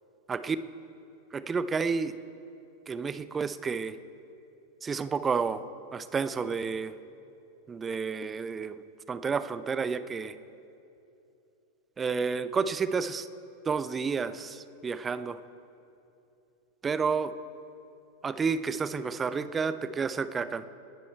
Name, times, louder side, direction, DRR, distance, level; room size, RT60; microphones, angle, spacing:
voice 1, 1.3-2.1 2.9-3.9 4.8-5.6 5.9-6.9 7.7-8.7 9.1-10.3 12.0-13.2 13.7-14.6 14.8-15.4 16.8-17.3 18.2-20.7, right 5 dB, 20° right, 13 dB, 0.7 m, -30 dB
29.0 x 10.5 x 4.5 m, 2.7 s
figure-of-eight pair, 90°, 0 cm